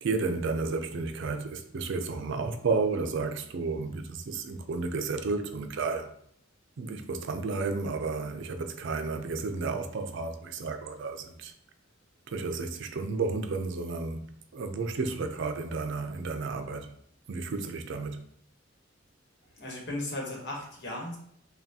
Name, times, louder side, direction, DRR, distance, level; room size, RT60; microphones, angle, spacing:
voice 1, 0.0-6.1 6.8-11.5 12.3-16.9 17.3-18.2, right 4 dB, 65° right, 0.5 m, -32 dB
voice 2, 19.5-21.2, left 1 dB, 60° left, 1.1 m, -36 dB
5.5 x 2.3 x 2.7 m
head